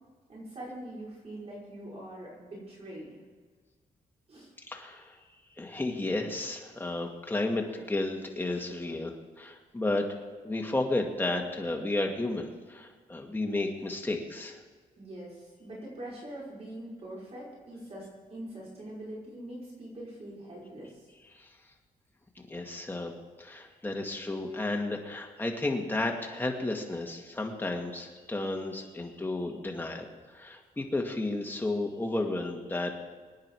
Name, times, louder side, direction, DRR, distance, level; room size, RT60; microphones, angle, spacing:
voice 1, 0.3-3.2 4.3-4.5 15.0-21.0, right 1 dB, 40° right, -5 dB, 5.5 m, -43 dB
voice 2, 4.7-5.2 5.6-14.6 21.3-21.5 22.4-23.1 23.4-33.0, left 2 dB, 15° left, 1 dB, 2.1 m, -33 dB
24.5 x 9.7 x 4.8 m, 1.5 s
wide cardioid pair, 135°, 16 cm